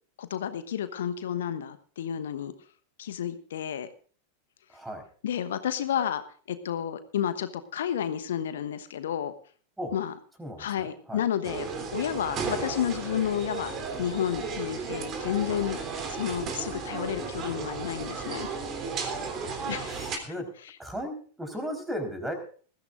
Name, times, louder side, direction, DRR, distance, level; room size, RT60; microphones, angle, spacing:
voice 1, 0.2-2.5 3.0-3.9 5.2-6.2 6.5-9.3 9.9-10.1 10.6-15.8 16.1-18.5 19.6-20.2, left 9 dB, 60° left, 11 dB, 1.1 m, -31 dB
voice 2, 4.7-5.0 9.8-10.0 10.4-11.2 17.4-17.7 19.9-20.5 20.8-22.3, equal, 5° right, 6 dB, 4.3 m, -36 dB
sound 1, 11.4-20.2, right 4 dB, 30° right, 3.4 m, -34 dB
20.5 x 15.0 x 2.6 m, 0.43 s
figure-of-eight pair, 90°, 0 cm